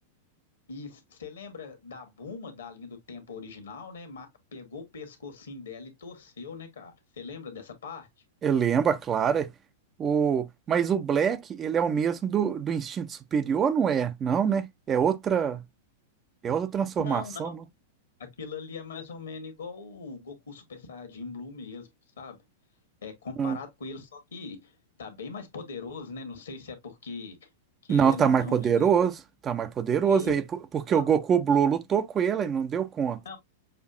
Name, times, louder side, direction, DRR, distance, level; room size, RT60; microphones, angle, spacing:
voice 1, 0.7-8.1 16.5-16.6 17.0-17.6 18.2-21.9 22.2-22.4 23.0-24.7 25.0-27.5 27.8-28.9 30.0-30.3 30.9-31.1 33.2-33.4, left 4 dB, 65° left, 1.3 m, -41 dB
voice 2, 8.4-9.5 10.0-15.6 16.4-17.6 23.4-23.6 27.9-29.1 29.4-30.4 30.7-33.2, right 7 dB, 25° right, 0.4 m, -25 dB
6.5 x 2.6 x 2.4 m
figure-of-eight pair, 95°, 0 cm